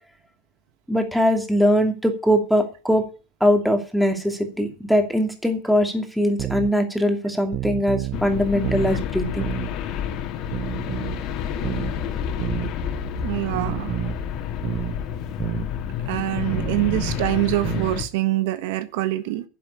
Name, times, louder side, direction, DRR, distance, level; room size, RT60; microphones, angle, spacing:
voice 1, 0.9-3.1 3.4-9.5, equal, ahead, 2.6 m, -21 dB
sound 1, 6.4-6.7 7.5-8.2 8.6-9.0 9.4-9.7 10.5-11.2 11.6-12.0 12.4-12.7 13.5-14.2 14.6-15.0 15.4-15.7 16.5-17.2 17.6-18.0, right 12 dB, 40° right, 0.8 m, -29 dB
sound 2, 8.1-18.0, left 8 dB, 50° left, 2.4 m, -29 dB
voice 2, 13.2-14.0 16.1-19.4, right 16 dB, 70° right, 1.4 m, -25 dB
11.0 x 7.8 x 8.4 m
supercardioid pair, 130°, 0 cm